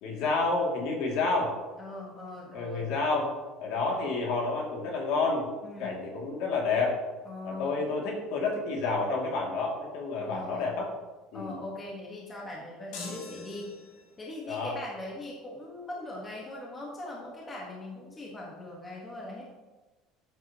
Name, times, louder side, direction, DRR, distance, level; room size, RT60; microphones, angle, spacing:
voice 1, 0.0-1.5 2.5-3.3 3.6-5.5 5.8-7.0 7.4-10.9 11.3-11.5 14.5-14.7, left 3 dB, 55° left, -1 dB, 2.6 m, -29 dB
voice 2, 1.8-2.9 5.6-6.0 7.2-7.8 10.2-10.7 11.3-13.7 14.2-19.4, left 2 dB, 15° left, -3 dB, 1.5 m, -41 dB
sound 1, 12.9-14.2, left 3 dB, 75° left, 2.8 m, -43 dB
14.0 x 8.0 x 3.0 m, 1.2 s
cardioid pair, 180°, 0 cm